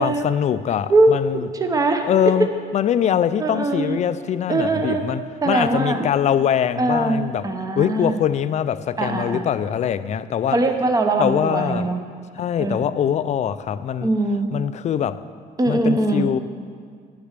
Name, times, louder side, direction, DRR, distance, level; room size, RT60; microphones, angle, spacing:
voice 1, 0.0-1.5 2.0-2.5 2.7-7.4 7.8-10.6 11.2-11.9 12.4-14.1 14.5-15.2 15.7-16.4, left 9 dB, 40° left, 0.4 m, -23 dB
voice 2, 0.9-2.3 3.4-4.0 4.5-5.0 5.4-6.1 6.8-8.2 9.0-9.5 10.5-12.0 12.6-12.9 14.0-14.5 15.6-16.3, right 2 dB, 20° right, 0.8 m, -21 dB
10.5 x 6.8 x 6.6 m
cardioid pair, 110°, 17 cm